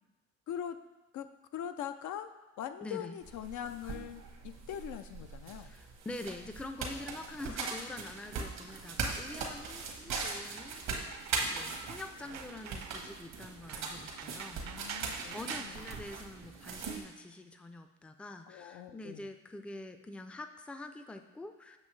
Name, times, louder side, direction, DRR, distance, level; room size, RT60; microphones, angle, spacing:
voice 1, 0.5-0.8 1.1-2.3 2.6-5.7 14.6-15.9 18.5-19.3, left 10 dB, 75° left, 9 dB, 0.5 m, -42 dB
voice 2, 2.8-3.1 5.6-15.0 15.2-21.8, left 2 dB, 5° left, 7 dB, 0.4 m, -46 dB
sound 1, 3.2-17.0, right 4 dB, 85° right, 1.2 m, -40 dB
sound 2, 7.0-17.0, right 8 dB, 65° right, 0.5 m, -50 dB
7.5 x 5.9 x 3.2 m, 1.1 s
cardioid pair, 90°, 30 cm